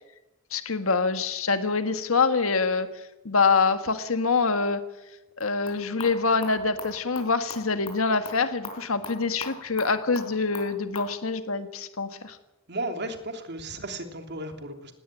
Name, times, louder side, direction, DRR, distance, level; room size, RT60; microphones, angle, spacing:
voice 1, 0.5-2.9 3.2-4.8 5.4-12.4, left 4 dB, 70° left, 9 dB, 1.7 m, -25 dB
sound 1, 5.3-11.1, left 3 dB, 25° left, 5.2 m, -43 dB
voice 2, 12.7-14.9, right 2 dB, 55° right, 6 dB, 3.0 m, -34 dB
19.5 x 17.0 x 9.1 m, 1.0 s
head